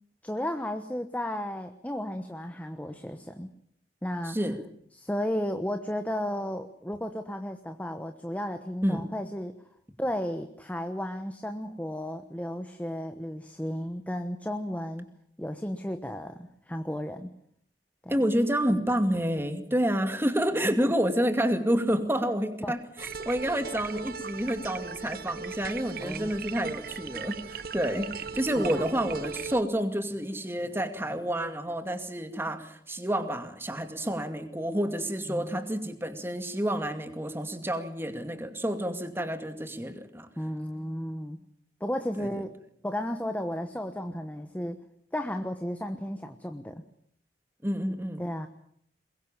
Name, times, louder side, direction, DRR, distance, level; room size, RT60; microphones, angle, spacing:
voice 1, 0.2-3.5 4.0-4.4 4.9-9.5 10.0-15.1 15.4-17.3 18.0-18.2 20.6-20.9 22.6-22.8 26.0-26.4 28.6-28.9 35.3-35.6 40.4-41.4 41.8-42.6 42.8-44.8 45.1-46.8 48.2-48.5, equal, 10° left, 7 dB, 1.2 m, -34 dB
voice 2, 4.2-4.6 8.8-9.1 18.1-40.3 42.2-42.3 47.6-48.2, equal, 15° right, 7 dB, 2.3 m, -29 dB
sound 1, 23.0-29.6, right 6 dB, 55° right, 0.9 m, -38 dB
22.5 x 22.0 x 7.3 m, 0.68 s
head